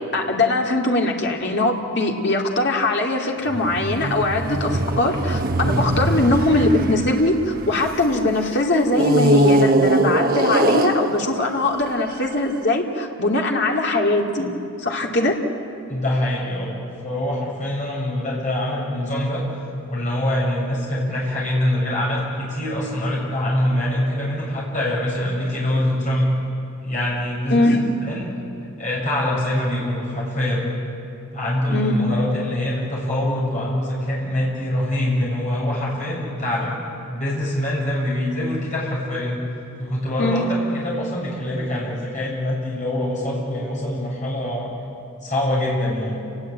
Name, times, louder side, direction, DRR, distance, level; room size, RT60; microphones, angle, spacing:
voice 1, 0.1-14.5 14.8-15.4 27.5-27.8 31.7-32.0 40.2-40.5, left 2 dB, 50° left, 1 dB, 2.5 m, -21 dB
sound 1, 3.5-8.2 8.9-12.3, right 1 dB, 40° right, 1.1 m, -21 dB
voice 2, 15.9-16.8 17.0-19.4 19.9-26.3 26.8-28.3 28.8-30.7 31.3-36.8 37.1-39.4 39.8-44.7 45.2-46.2, left 1 dB, 35° left, -4 dB, 7.4 m, -24 dB
29.5 x 19.0 x 8.7 m, 2.7 s
head